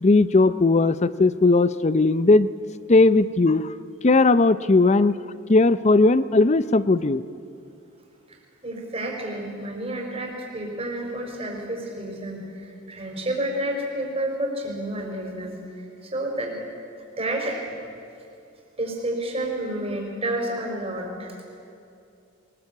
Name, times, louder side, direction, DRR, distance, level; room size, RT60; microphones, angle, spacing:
voice 1, 0.0-2.5 2.9-3.7 4.0-5.1 5.5-7.2, left 3 dB, 35° left, 15 dB, 0.5 m, -18 dB
voice 2, 8.3-16.6 17.2-17.6 18.8-21.3, right 1 dB, 30° right, 1 dB, 4.7 m, -30 dB
23.0 x 20.5 x 8.4 m, 2.6 s
head